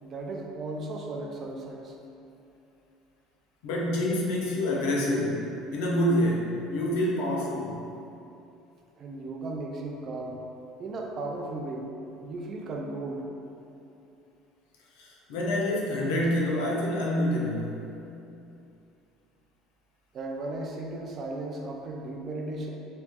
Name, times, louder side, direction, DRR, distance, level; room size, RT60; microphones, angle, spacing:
voice 1, 0.0-2.0 9.0-10.5 10.8-11.9 12.2-13.2 20.1-22.7, right 2 dB, 30° right, 0 dB, 0.4 m, -36 dB
voice 2, 3.6-7.8 15.0-17.7, left 1 dB, 85° left, -3 dB, 0.7 m, -27 dB
3.1 x 3.0 x 3.5 m, 2.7 s
cardioid pair, 170°, 0 cm